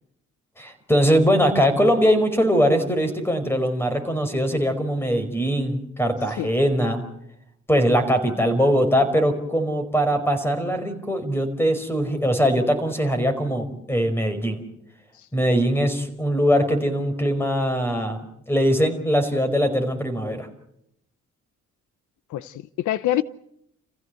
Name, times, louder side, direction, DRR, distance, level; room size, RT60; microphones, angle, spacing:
voice 1, 0.6-7.0 7.7-14.6 15.3-18.2 18.5-20.5, equal, 10° left, 4.9 m, -21 dB
voice 2, 22.3-23.2, left 13 dB, 75° left, 0.8 m, -25 dB
30.0 x 15.5 x 7.9 m
cardioid pair, 90°, 30 cm